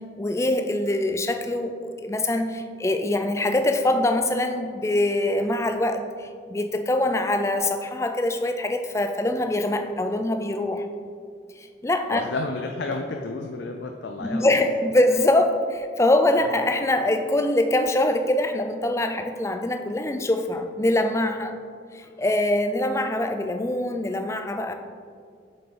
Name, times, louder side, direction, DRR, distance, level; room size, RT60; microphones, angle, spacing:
voice 1, 0.2-10.9 11.6-12.2 14.2-21.6 21.9-24.7, left 1 dB, 15° left, 6 dB, 0.4 m, -24 dB
voice 2, 12.1-14.5, left 3 dB, 75° left, 3 dB, 0.5 m, -31 dB
7.2 x 5.5 x 4.1 m, 2.2 s
head